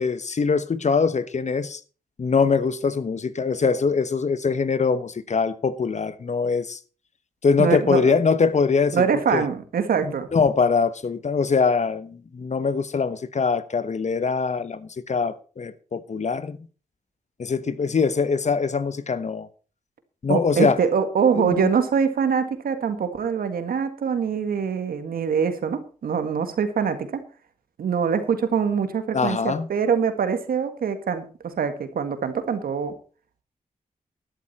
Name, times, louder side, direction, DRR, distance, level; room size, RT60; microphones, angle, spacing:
voice 1, 0.0-1.8 2.2-6.8 7.4-9.1 9.3-9.4 10.0-16.6 17.4-19.5 20.2-20.8 21.3-21.7 29.1-29.7, left 5 dB, 50° left, 1.1 m, -23 dB
voice 2, 7.6-8.0 8.9-10.3 20.3-27.2 27.8-33.0, right 6 dB, 85° right, 1.7 m, -24 dB
12.5 x 11.5 x 4.2 m
cardioid pair, 60°, 15 cm